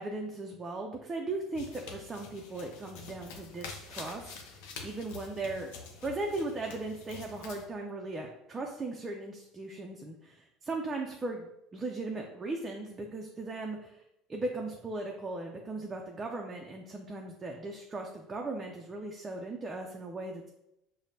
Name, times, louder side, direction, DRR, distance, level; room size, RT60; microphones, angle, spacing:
voice 1, 0.0-4.4 4.8-5.7 6.0-14.0 14.3-20.5, right 2 dB, 25° right, 0 dB, 0.4 m, -38 dB
sound 1, 1.5-7.7, left 5 dB, 80° left, 0.5 m, -47 dB
4.9 x 2.1 x 2.7 m, 0.83 s
supercardioid pair, 100°, 0 cm